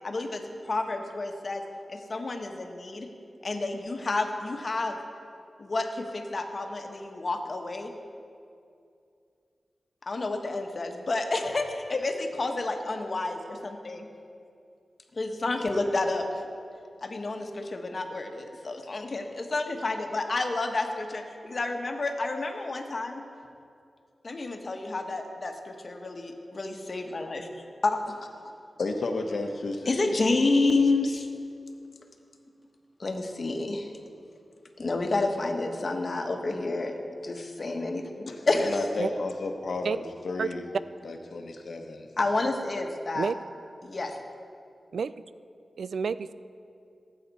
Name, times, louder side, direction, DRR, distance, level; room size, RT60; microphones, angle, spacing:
voice 1, 0.0-1.6 1.9-3.1 3.4-5.0 5.6-7.9 10.1-14.1 15.1-16.3 17.0-23.2 24.2-27.5 27.8-28.2 29.9-31.3 33.0-34.0 34.8-37.0 37.2-38.9 42.2-43.3 43.8-44.2, left 2 dB, 55° left, 4 dB, 1.2 m, -29 dB
voice 2, 28.8-30.2 38.3-40.6 41.0-42.1, left 3 dB, 75° left, 4 dB, 1.1 m, -33 dB
voice 3, 45.8-46.3, right 5 dB, 85° right, 15 dB, 0.3 m, -29 dB
18.0 x 8.4 x 4.1 m, 2.5 s
wide cardioid pair, 65°, 0 cm